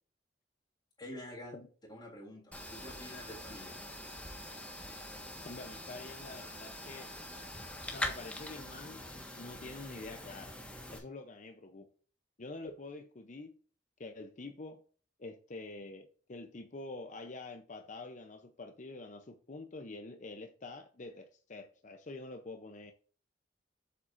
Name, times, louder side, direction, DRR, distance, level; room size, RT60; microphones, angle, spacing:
voice 1, 1.0-1.5 1.9-3.7, left 1 dB, 25° left, 3.6 m, -47 dB
sound 1, 2.5-11.0, left 1 dB, 10° left, 1.5 m, -44 dB
voice 2, 5.4-7.1 7.9-9.0 9.4-10.6 10.9-11.9 12.4-13.6 14.0-14.8 15.2-22.9, left 2 dB, 45° left, 0.7 m, -46 dB
8.2 x 7.6 x 2.6 m
head